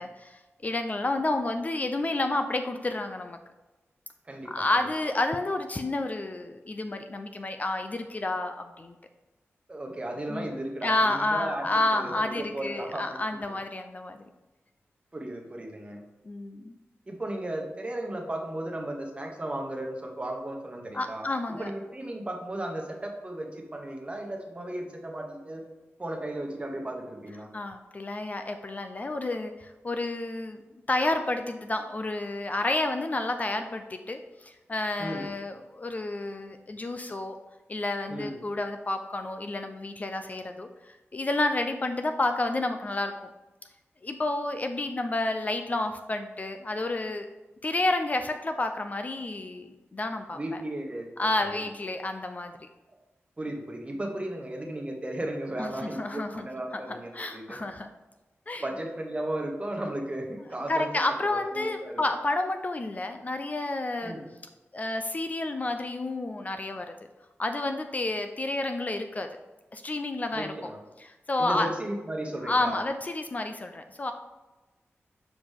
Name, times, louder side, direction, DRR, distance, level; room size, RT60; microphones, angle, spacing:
voice 1, 0.0-3.4 4.5-8.9 10.3-10.5 10.8-14.2 16.3-16.7 20.9-21.7 27.5-30.6 30.9-37.4 37.7-43.1 44.0-47.3 47.6-50.4 51.2-52.5 55.6-56.5 56.7-57.9 58.5-58.6 60.7-64.2 64.7-66.9 67.4-69.3 69.7-70.5 71.0-71.7 72.4-74.1, left 2 dB, 35° left, 6 dB, 0.4 m, -30 dB
voice 2, 4.3-4.6 9.7-11.7 12.0-13.1 15.1-16.0 17.1-25.6 26.0-27.5 35.0-35.3 38.1-38.5 50.3-51.1 51.4-51.5 53.4-57.4 58.6-60.9 61.2-62.0 64.0-64.3 70.3-70.8 71.4-72.8, right 1 dB, 25° right, 1 dB, 1.1 m, -35 dB
7.2 x 4.8 x 3.6 m, 1.1 s
wide cardioid pair, 110°, 5 cm